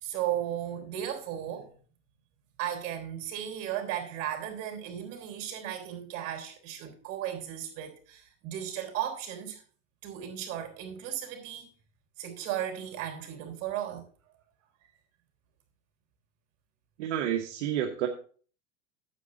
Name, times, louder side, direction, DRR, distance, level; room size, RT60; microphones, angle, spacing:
voice 1, 0.0-1.7 2.6-9.6 10.0-11.6 12.2-14.1, right 11 dB, 50° right, 3.8 m, -35 dB
voice 2, 17.0-18.1, right 10 dB, 75° right, 1.2 m, -29 dB
9.4 x 7.7 x 3.9 m
supercardioid pair, 135°, 37 cm